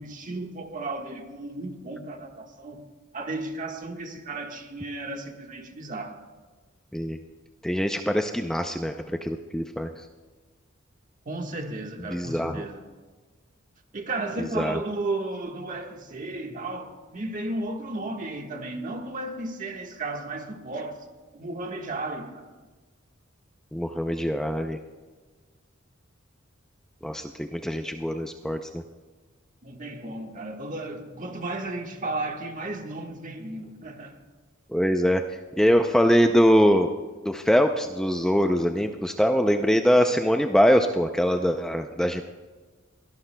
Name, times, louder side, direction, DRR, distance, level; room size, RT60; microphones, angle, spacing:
voice 1, 0.0-2.8 3.1-6.2 11.2-12.8 13.9-21.0 21.3-22.5 29.6-34.2, right 2 dB, 40° right, 1.5 m, -34 dB
voice 2, 7.6-10.1 12.1-12.6 14.4-14.8 23.7-24.8 27.0-28.8 34.7-36.9 37.3-42.2, equal, 5° left, 0.5 m, -23 dB
22.5 x 17.5 x 2.2 m
head